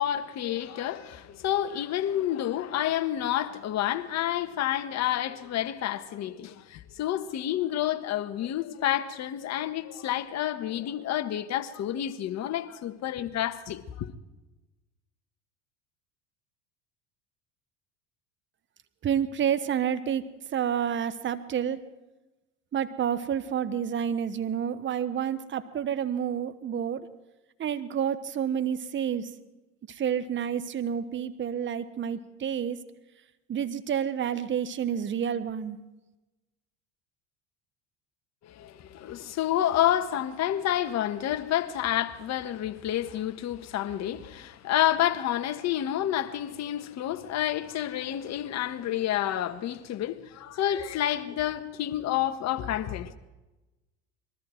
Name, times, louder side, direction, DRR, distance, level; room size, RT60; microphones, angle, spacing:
voice 1, 0.0-14.1 38.4-53.1, left 12 dB, 50° left, 1.4 m, -29 dB
voice 2, 19.0-21.8 22.7-27.1 27.6-29.3 29.9-32.8 33.5-35.8, right 8 dB, 35° right, 1.2 m, -29 dB
22.0 x 13.5 x 4.5 m
hypercardioid pair, 85°, 34 cm